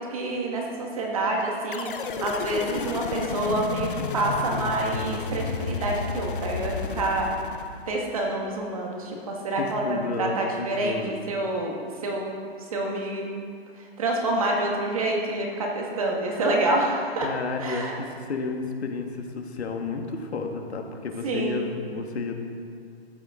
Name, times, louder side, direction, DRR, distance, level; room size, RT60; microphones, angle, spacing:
voice 1, 0.0-7.3 7.9-11.0 11.3-12.3 12.7-13.3 13.8-17.3 17.6-18.0 21.2-21.6, right 2 dB, 35° right, -1 dB, 1.7 m, -27 dB
sound 1, 1.7-8.2, left 5 dB, 55° left, 0.7 m, -32 dB
voice 2, 9.6-11.1 17.2-22.4, left 4 dB, 85° left, 3 dB, 1.7 m, -32 dB
14.0 x 9.9 x 3.7 m, 2.2 s
hypercardioid pair, 180°, 32 cm